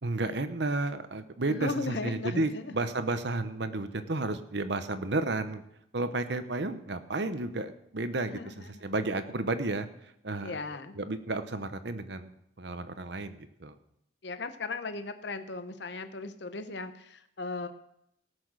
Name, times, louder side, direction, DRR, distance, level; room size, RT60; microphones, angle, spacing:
voice 1, 0.0-5.6 5.9-9.9 10.2-10.6 10.9-13.7, right 2 dB, 60° right, 10 dB, 0.9 m, -32 dB
voice 2, 1.5-2.8 8.3-8.8 10.4-11.0 14.2-17.7, left 3 dB, 60° left, 9 dB, 0.8 m, -37 dB
18.0 x 6.3 x 6.2 m, 0.78 s
head